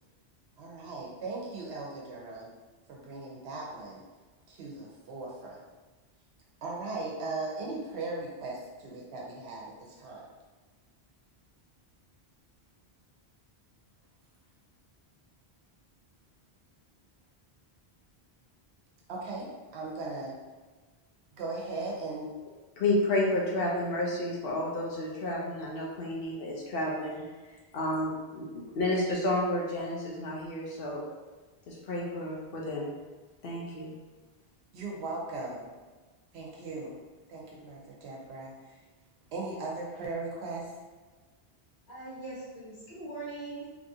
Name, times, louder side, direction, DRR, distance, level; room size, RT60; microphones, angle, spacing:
voice 1, 0.6-2.5 2.9-4.0 4.5-5.6 6.6-10.3 19.1-20.4 21.4-22.3 34.7-35.7 36.3-37.0 37.3-38.8 39.3-40.7, right 3 dB, 80° right, -3 dB, 0.9 m, -38 dB
voice 2, 22.8-27.2 27.7-31.0 31.7-32.9 33.4-34.0, left 1 dB, 65° left, -3 dB, 0.7 m, -31 dB
voice 3, 41.9-43.7, right 2 dB, 45° left, -9 dB, 1.1 m, -41 dB
2.9 x 2.4 x 2.7 m, 1.3 s
omnidirectional pair, 1.1 m